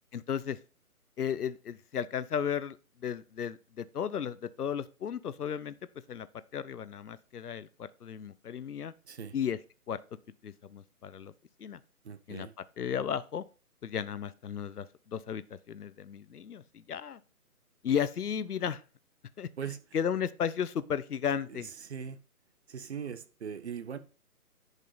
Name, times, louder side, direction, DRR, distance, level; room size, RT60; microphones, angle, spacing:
voice 1, 0.1-0.6 1.2-5.7 6.1-6.3 6.5-8.9 9.3-9.6 9.9-10.0 10.4-11.3 11.6-11.8 12.3-12.5 12.8-13.4 13.8-17.2 17.8-18.8 19.4-19.5 19.9-21.7, left 8 dB, 80° left, 0.9 m, -34 dB
voice 2, 12.0-12.5 19.6-19.8 21.5-22.2 22.7-24.0, right 7 dB, 45° right, 1.1 m, -40 dB
11.0 x 5.5 x 4.0 m
hypercardioid pair, 160°, 46 cm